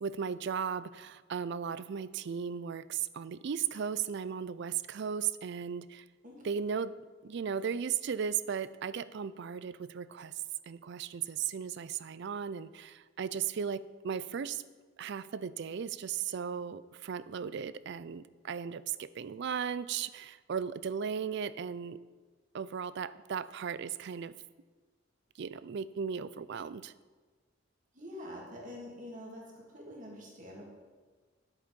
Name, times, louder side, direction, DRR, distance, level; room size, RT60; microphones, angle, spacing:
voice 1, 0.0-6.0 6.4-6.9 7.2-10.3 10.7-14.6 15.0-22.0 22.5-24.3 25.4-26.9, right 7 dB, 60° right, 16 dB, 0.4 m, -36 dB
voice 2, 27.9-30.7, left 1 dB, 40° right, -2 dB, 2.7 m, -46 dB
10.5 x 8.2 x 5.2 m, 1.4 s
head